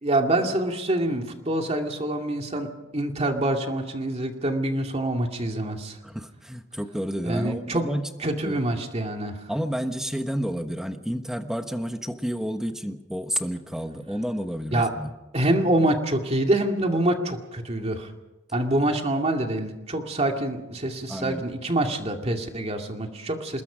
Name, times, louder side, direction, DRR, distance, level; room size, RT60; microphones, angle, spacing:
voice 1, 0.0-6.0 7.2-7.8 8.2-9.4 14.7-14.9 15.3-18.1 18.5-23.6, right 1 dB, 35° right, 3 dB, 2.3 m, -26 dB
voice 2, 6.0-8.2 8.4-8.7 9.5-15.1 21.1-21.4, equal, 5° right, 7 dB, 1.2 m, -30 dB
26.0 x 21.0 x 5.1 m, 1.0 s
head